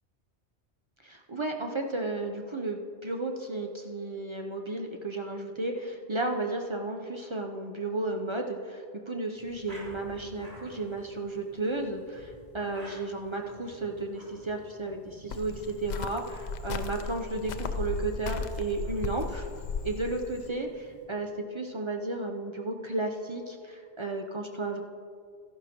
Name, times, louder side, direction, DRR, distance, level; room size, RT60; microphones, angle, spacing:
voice 1, 1.0-19.5 19.8-24.8, right 2 dB, 35° right, 2 dB, 0.5 m, -33 dB
sound 1, 9.3-21.1, right 1 dB, 60° right, 3.7 m, -52 dB
Cricket, 15.3-20.5, left 4 dB, 55° left, 0.5 m, -35 dB
13.5 x 11.5 x 2.9 m, 2.2 s
omnidirectional pair, 1.2 m